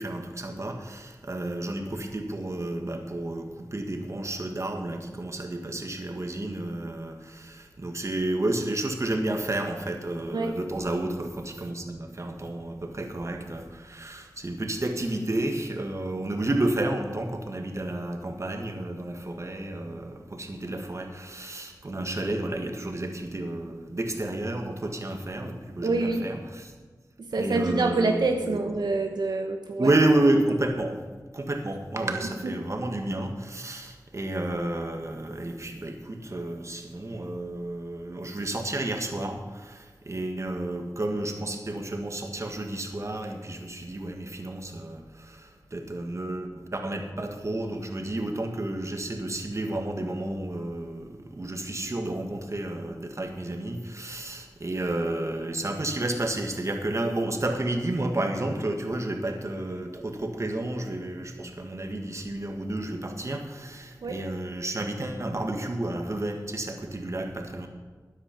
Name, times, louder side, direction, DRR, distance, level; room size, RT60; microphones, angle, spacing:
voice 1, 0.0-26.7 27.4-28.6 29.8-30.9 31.3-67.7, right 1 dB, 45° right, 4 dB, 1.7 m, -31 dB
voice 2, 25.8-26.3 27.2-30.0 32.4-32.6 64.0-64.2, right 3 dB, 85° right, 4 dB, 1.0 m, -26 dB
13.5 x 9.8 x 5.2 m, 1.4 s
wide cardioid pair, 60°, 7 cm